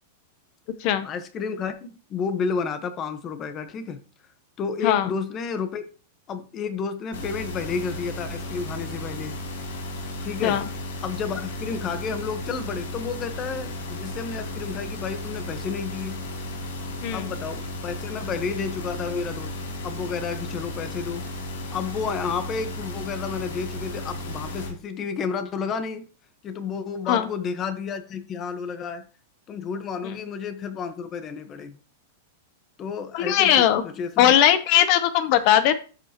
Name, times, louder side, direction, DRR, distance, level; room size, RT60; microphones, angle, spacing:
voice 1, 1.0-4.0 4.6-5.8 6.3-9.4 10.2-10.6 11.0-16.3 17.1-19.5 19.8-21.3 21.7-26.1 26.4-29.1 29.5-31.8 32.8-34.3, left 5 dB, 30° left, 1.1 m, -31 dB
sound 1, 7.1-24.7, left 1 dB, 80° left, 3.0 m, -34 dB
voice 2, 33.1-33.8 34.2-35.8, left 11 dB, 50° left, 0.8 m, -19 dB
13.0 x 5.5 x 2.9 m
supercardioid pair, 140°, 0 cm